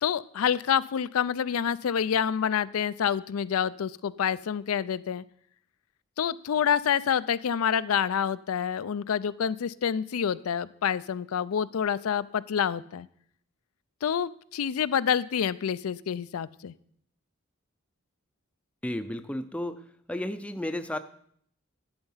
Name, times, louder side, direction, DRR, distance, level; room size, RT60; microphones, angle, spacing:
voice 1, 0.0-5.2 6.2-13.1 14.0-16.7, left 8 dB, 90° left, 15 dB, 0.4 m, -27 dB
voice 2, 18.8-19.8 20.1-21.0, left 1 dB, 5° left, 9 dB, 0.4 m, -32 dB
11.0 x 8.2 x 5.6 m, 0.64 s
head